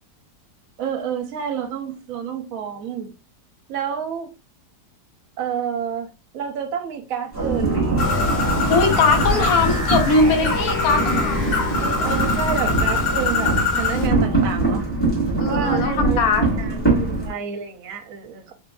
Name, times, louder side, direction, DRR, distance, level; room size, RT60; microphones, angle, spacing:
voice 1, 0.8-3.1 3.7-4.3 5.4-6.1 6.3-7.9 9.3-9.5 11.8-14.8 15.5-16.2 16.6-18.5, right 7 dB, 65° right, 1.0 m, -29 dB
sound 1, 7.3-17.3, right 2 dB, 10° left, 1.9 m, -24 dB
sound 2, 7.3-13.6, right 2 dB, 10° right, 0.9 m, -28 dB
Bird, 8.0-14.1, left 4 dB, 85° left, 1.6 m, -24 dB
voice 2, 8.7-11.6 15.4-16.4, left 4 dB, 65° left, 1.2 m, -20 dB
3.6 x 3.5 x 2.3 m
omnidirectional pair, 1.8 m